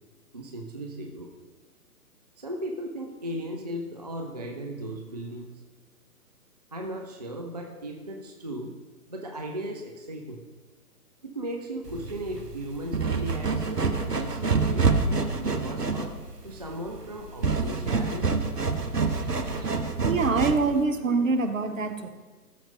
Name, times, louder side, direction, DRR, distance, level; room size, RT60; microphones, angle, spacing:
voice 1, 0.3-1.3 2.4-5.6 6.7-8.8 9.1-10.4 11.2-14.9 15.4-16.2 16.4-18.3, right 1 dB, 30° right, 2 dB, 0.4 m, -36 dB
sound 1, 11.9-20.8, right 4 dB, 90° right, 1.0 m, -27 dB
voice 2, 20.0-22.1, right 4 dB, 55° right, 9 dB, 1.0 m, -25 dB
13.5 x 4.5 x 5.3 m, 1.3 s
figure-of-eight pair, 130°, 46 cm